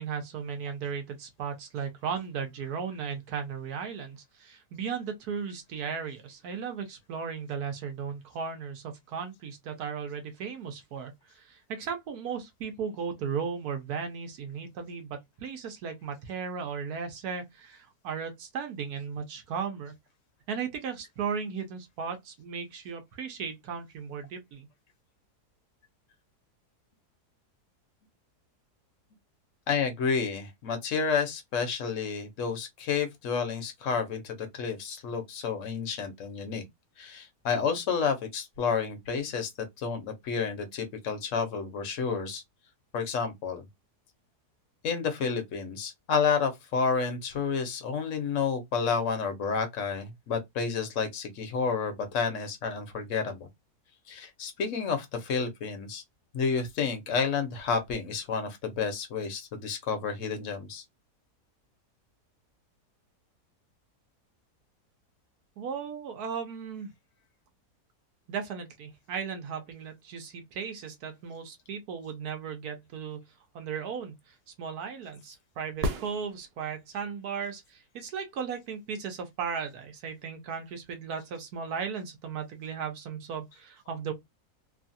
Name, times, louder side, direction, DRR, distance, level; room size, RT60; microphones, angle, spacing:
voice 1, 0.0-19.9 20.5-24.7 65.6-66.9 68.3-73.2 73.5-74.1 74.6-84.1, right 6 dB, 75° right, 1.3 m, -36 dB
voice 2, 29.7-36.6 37.0-39.5 39.8-42.4 42.9-43.7 44.8-53.5 54.1-56.0 56.3-60.8, left 5 dB, 60° left, 1.1 m, -30 dB
sound 1, 75.7-76.9 80.8-80.9, right 1 dB, 90° right, 1.2 m, -33 dB
3.1 x 2.3 x 2.6 m
omnidirectional pair, 1.7 m